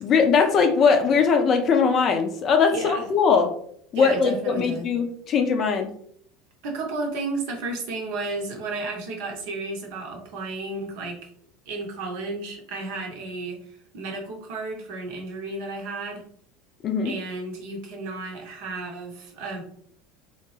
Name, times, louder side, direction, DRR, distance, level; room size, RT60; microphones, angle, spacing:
voice 1, 0.0-3.5 3.9-5.9 16.8-17.1, left 5 dB, 40° left, 6 dB, 0.5 m, -20 dB
voice 2, 2.7-3.1 3.9-4.9 6.6-11.3 11.7-16.2 17.0-19.6, right 3 dB, 60° right, 1 dB, 0.7 m, -33 dB
2.8 x 2.2 x 3.1 m, 0.63 s
figure-of-eight pair, 70°, 0 cm